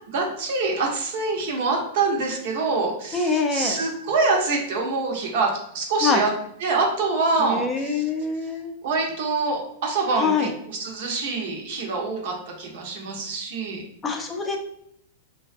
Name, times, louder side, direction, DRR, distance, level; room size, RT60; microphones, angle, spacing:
voice 1, 0.1-6.3 6.6-8.0 8.8-13.8, right 3 dB, 65° right, 1 dB, 0.7 m, -25 dB
voice 2, 3.1-3.8 6.0-6.2 7.4-8.8 10.2-10.5 14.0-14.6, left 4 dB, 20° left, 2 dB, 0.4 m, -24 dB
2.4 x 2.2 x 2.4 m, 0.71 s
hypercardioid pair, 115°, 0 cm